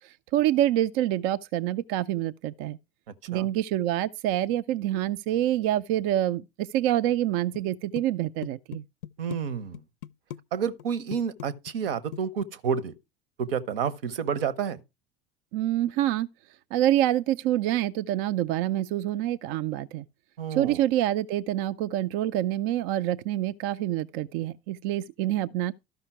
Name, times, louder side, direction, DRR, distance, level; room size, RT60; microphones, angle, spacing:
voice 1, 0.0-2.8 3.3-8.8 15.5-16.3 16.7-20.0 20.5-25.7, right 13 dB, 45° right, 0.4 m, -26 dB
sound 1, 7.5-7.7 8.0-9.4 9.7-10.4 10.7-10.9 11.1-12.5, left 12 dB, 65° left, 0.5 m, -39 dB
voice 2, 9.2-9.8 10.5-12.9 13.4-14.8 20.4-20.8, right 7 dB, 65° right, 0.9 m, -29 dB
12.5 x 5.6 x 4.4 m
figure-of-eight pair, 70°, 30 cm